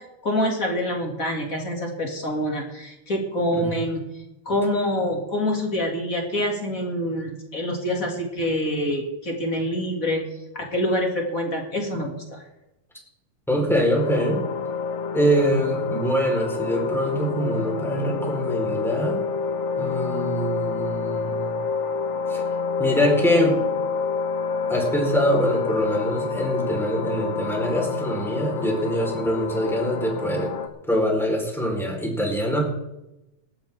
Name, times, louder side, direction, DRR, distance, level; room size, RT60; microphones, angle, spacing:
voice 1, 0.0-12.4, left 1 dB, 30° left, 0 dB, 2.5 m, -26 dB
voice 2, 13.5-14.4 15.1-19.2 19.8-21.7 22.3-22.4 22.8-23.6 24.7-30.5 30.8-32.6, equal, ahead, -1 dB, 3.8 m, -24 dB
sound 1, 14.0-30.7, left 5 dB, 60° left, 1.9 m, -28 dB
18.5 x 13.5 x 3.6 m, 0.92 s
omnidirectional pair, 3.4 m